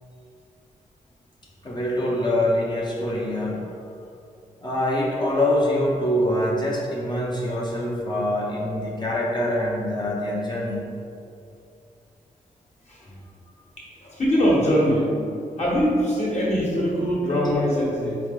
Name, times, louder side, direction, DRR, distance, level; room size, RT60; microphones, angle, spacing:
voice 1, 1.6-3.6 4.6-10.8 17.3-17.7, left 1 dB, 30° left, -4 dB, 0.7 m, -24 dB
voice 2, 14.0-15.1 15.6-18.2, equal, 50° left, -5 dB, 1.3 m, -22 dB
3.9 x 3.1 x 3.6 m, 2.5 s
cardioid pair, 80°, 14 cm